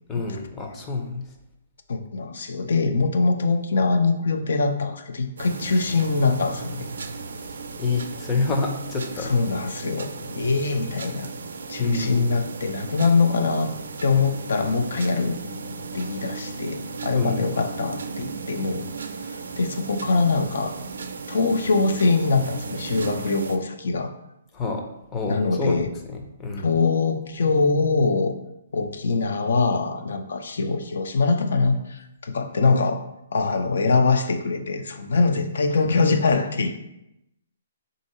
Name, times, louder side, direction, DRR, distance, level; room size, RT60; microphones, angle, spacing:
voice 1, 0.1-1.3 7.8-9.3 11.8-12.4 17.1-17.5 24.5-24.8 25.1-25.8 26.1-26.8, left 3 dB, 15° left, 2 dB, 0.5 m, -27 dB
voice 2, 1.9-6.9 9.2-11.3 11.7-13.7 14.0-15.4 15.9-18.9 19.2-20.8 21.3-24.1 25.3-25.9 26.6-28.3 28.7-33.0 33.3-36.8, left 4 dB, 75° left, 7 dB, 0.5 m, -23 dB
sound 1, 5.4-23.6, right 4 dB, 80° right, 0.4 m, -35 dB
3.7 x 2.7 x 4.2 m, 0.85 s
hypercardioid pair, 160°, 0 cm